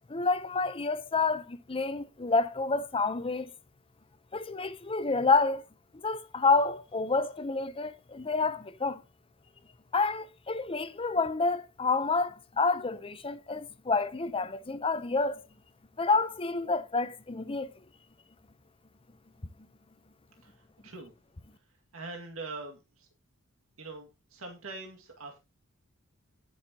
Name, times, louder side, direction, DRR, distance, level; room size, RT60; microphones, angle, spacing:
voice 1, 0.1-3.5 4.3-5.6 5.9-9.0 9.9-15.4 16.0-17.7, left 3 dB, 25° left, 0.7 m, -29 dB
voice 2, 20.4-21.1 21.5-21.6 21.9-23.1 23.8-25.4, right 3 dB, 70° right, 2.0 m, -43 dB
18.5 x 6.4 x 2.9 m
head